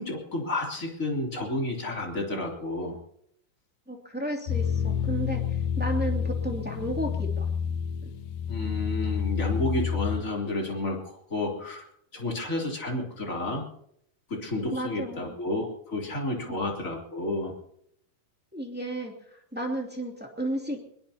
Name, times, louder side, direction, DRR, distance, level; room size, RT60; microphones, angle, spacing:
voice 1, 0.0-3.0 8.5-11.8 12.1-13.7 14.3-17.5, left 2 dB, 20° left, 0 dB, 3.3 m, -31 dB
voice 2, 3.9-7.5 14.7-15.4 16.5-16.6 18.5-20.8, right 1 dB, 5° right, 0 dB, 1.6 m, -33 dB
sound 1, 4.5-10.2, left 7 dB, 75° left, 2.4 m, -29 dB
22.5 x 22.0 x 2.9 m, 0.72 s
omnidirectional pair, 4.5 m